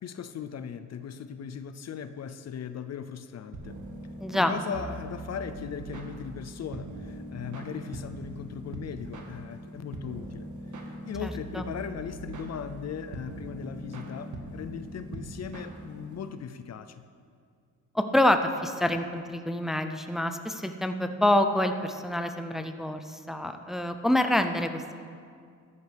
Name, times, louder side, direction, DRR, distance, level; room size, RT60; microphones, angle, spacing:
voice 1, 0.0-3.8 4.3-10.5 10.8-17.0, left 7 dB, 50° left, 10 dB, 0.6 m, -38 dB
sound 1, 3.5-16.3, right 1 dB, 60° right, 1.6 m, -41 dB
voice 2, 4.2-4.5 11.2-11.6 17.9-24.9, left 1 dB, ahead, 7 dB, 0.6 m, -27 dB
13.5 x 11.0 x 3.5 m, 2.2 s
cardioid pair, 85°, 33 cm